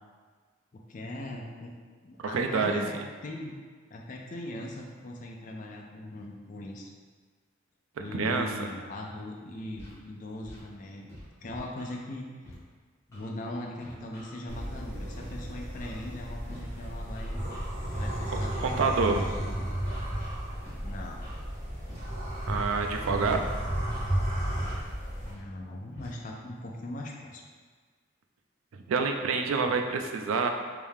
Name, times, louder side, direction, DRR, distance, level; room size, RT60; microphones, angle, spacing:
voice 1, 0.9-1.7 2.0-3.5 3.9-6.9 8.0-11.1 11.4-12.3 13.1-17.4 18.0-19.7 20.8-21.4 25.2-27.4, left 1 dB, 40° left, -1 dB, 0.4 m, -40 dB
voice 2, 2.3-2.8 8.1-8.7 18.6-19.2 22.5-23.4 28.9-30.5, right 4 dB, 85° right, 4 dB, 0.4 m, -27 dB
Scratching (performance technique), 9.7-9.9 10.4-10.6 11.1-11.9 12.4-12.5 13.1-13.2 13.8-14.6 15.1-15.3 15.8-16.0 16.5-16.6 17.2-18.0 18.5-18.7 19.2-19.4 19.9-20.7 21.2-21.4 21.9-22.0 22.3-22.7 23.2-23.3 23.8-24.0 24.6-24.7 25.2-25.4 25.9-26.1, equal, 15° left, 1.0 m, -48 dB
sound 1, 14.5-25.3, right 1 dB, 40° right, 1.0 m, -33 dB
3.3 x 2.7 x 3.5 m, 1.5 s
head